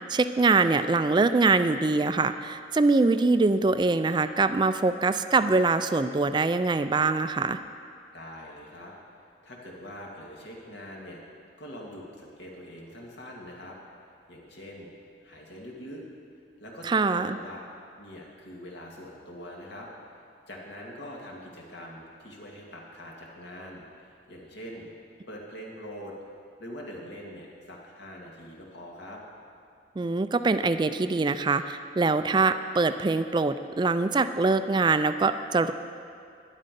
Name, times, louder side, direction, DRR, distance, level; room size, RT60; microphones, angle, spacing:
voice 1, 0.1-7.6 16.8-17.4 30.0-35.7, right 3 dB, 25° right, 11 dB, 0.3 m, -23 dB
voice 2, 8.1-8.9 9.4-11.2 11.6-13.8 14.3-14.9 15.2-16.0 16.6-16.9 17.1-17.6 18.0-24.9 25.3-26.1 26.6-29.2, equal, 75° left, -2 dB, 2.2 m, -43 dB
11.5 x 11.0 x 5.3 m, 2.4 s
head